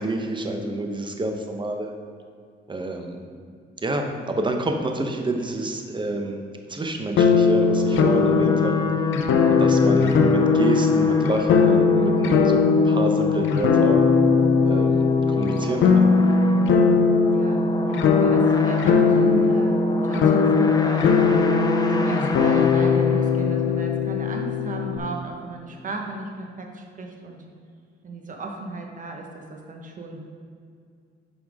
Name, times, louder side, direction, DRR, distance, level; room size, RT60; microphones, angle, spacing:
voice 1, 0.0-1.9 2.7-3.2 3.8-6.4 6.7-8.7 9.6-14.0 14.7-16.0, right 2 dB, 25° right, 4 dB, 1.0 m, -28 dB
sound 1, 7.2-25.0, left 5 dB, 75° left, 0.7 m, -19 dB
sound 2, 7.5-23.8, left 3 dB, 20° left, 0.7 m, -30 dB
voice 2, 9.2-9.7 17.3-17.6 17.9-21.4 21.9-27.4 28.0-30.2, right 2 dB, 40° right, 2 dB, 1.3 m, -34 dB
9.1 x 5.9 x 3.6 m, 2.3 s
cardioid pair, 90°, 20 cm